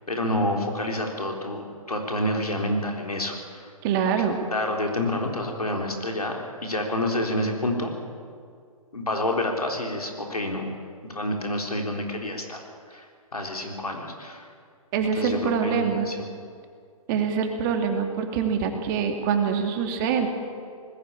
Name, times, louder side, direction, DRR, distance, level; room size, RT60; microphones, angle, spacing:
voice 1, 0.1-3.7 4.5-7.9 8.9-10.7 11.0-12.6 12.9-14.5 15.2-16.3, left 1 dB, 90° left, 2 dB, 3.9 m, -28 dB
voice 2, 3.8-4.4 14.9-16.1 17.1-20.3, right 6 dB, 35° right, 4 dB, 2.6 m, -25 dB
20.0 x 16.0 x 8.6 m, 2.2 s
figure-of-eight pair, 130°, 19 cm